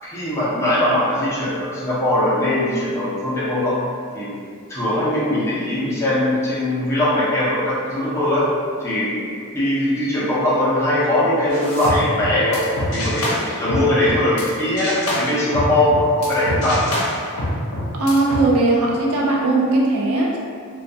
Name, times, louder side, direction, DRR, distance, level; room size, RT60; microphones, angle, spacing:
voice 1, 0.0-3.8 4.1-4.3 4.7-8.5 8.8-9.2 9.5-16.8, left 1 dB, 10° left, -9 dB, 0.5 m, -20 dB
sound 1, 11.5-14.5 14.8-18.4, left 1 dB, 75° left, 0.6 m, -25 dB
voice 2, 17.9-20.4, right 2 dB, 80° right, -2 dB, 0.4 m, -18 dB
2.2 x 2.2 x 2.6 m, 2.1 s
head